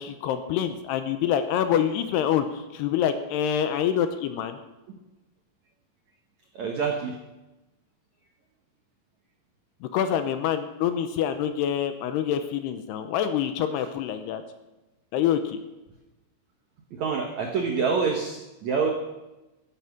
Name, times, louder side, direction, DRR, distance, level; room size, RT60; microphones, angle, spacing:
voice 1, 0.0-4.6 9.8-14.4 15.1-15.6, left 9 dB, 80° left, 9 dB, 2.7 m, -26 dB
voice 2, 6.5-7.1 13.7-13.9 16.9-18.9, right 5 dB, 70° right, 2 dB, 1.7 m, -27 dB
13.5 x 11.0 x 6.0 m, 1.0 s
omnidirectional pair, 5.1 m